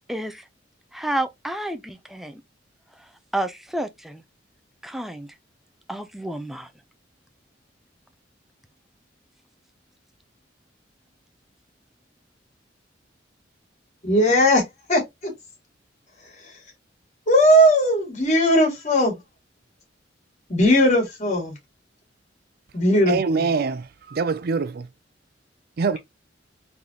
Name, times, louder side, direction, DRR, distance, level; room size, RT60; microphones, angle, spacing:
voice 1, 0.1-0.4 0.9-2.4 3.3-4.2 4.8-5.3 5.9-6.7, right 1 dB, ahead, 0.5 m, -30 dB
voice 2, 14.0-14.6 14.9-15.3 17.3-19.1 20.5-21.5 22.7-23.2, equal, 40° left, 2.2 m, -18 dB
voice 3, 23.1-24.9 25.8-26.0, right 4 dB, 55° right, 0.4 m, -24 dB
3.9 x 3.5 x 2.8 m
head